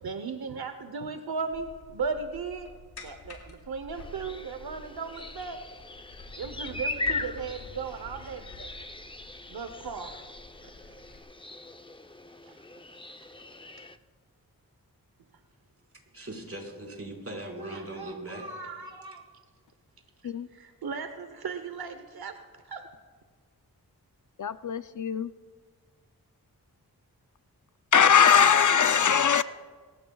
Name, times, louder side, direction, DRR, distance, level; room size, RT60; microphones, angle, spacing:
voice 1, 0.0-2.7 3.0-5.7 6.4-8.7 9.5-10.2 10.6-11.0 12.5-12.6 17.6-19.2 20.5-22.8, right 5 dB, 75° right, 0.9 m, -37 dB
sound 1, 1.5-11.2, left 2 dB, 80° left, 2.3 m, -49 dB
sound 2, 3.9-14.0, left 3 dB, 15° left, 0.7 m, -39 dB
voice 2, 16.1-18.4, right 1 dB, 40° right, 4.9 m, -39 dB
voice 3, 24.4-25.3 27.9-29.4, left 7 dB, 55° left, 0.6 m, -21 dB
23.5 x 15.0 x 2.3 m
cardioid pair, 45°, 37 cm